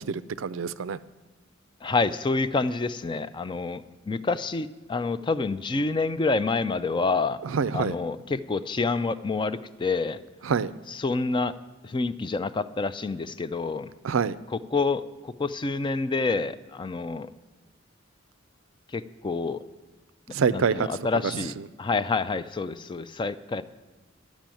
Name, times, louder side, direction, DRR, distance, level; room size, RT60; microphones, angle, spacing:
voice 1, 0.1-1.0 7.4-7.9 10.4-10.7 14.0-14.4 20.3-20.9, right 6 dB, 85° right, 16 dB, 0.4 m, -26 dB
voice 2, 1.8-7.4 7.7-10.2 10.9-11.5 11.8-13.9 14.5-17.3 18.9-19.6 20.5-21.5 21.8-23.6, left 3 dB, 25° left, 14 dB, 0.4 m, -28 dB
11.5 x 6.2 x 9.0 m, 1.2 s
head